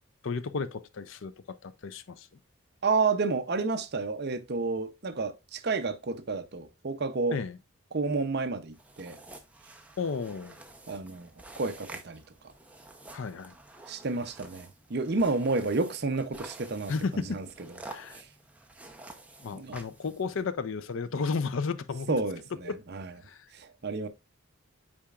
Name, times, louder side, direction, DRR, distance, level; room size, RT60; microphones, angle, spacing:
voice 1, 0.2-1.3 1.6-2.3 7.3-7.6 10.0-10.6 13.1-13.5 16.9-17.4 17.9-18.2 19.4-22.2 22.6-22.8 23.2-23.5, left 4 dB, 60° left, 0.5 m, -33 dB
voice 2, 2.8-7.4 7.9-9.2 10.9-11.3 11.6-12.2 13.9-17.5 18.1-18.3 19.5-19.8 22.1-23.1 23.5-24.1, right 3 dB, 50° right, 0.6 m, -30 dB
sound 1, 8.7-20.4, right 2 dB, 5° right, 0.7 m, -49 dB
8.6 x 4.8 x 2.4 m
head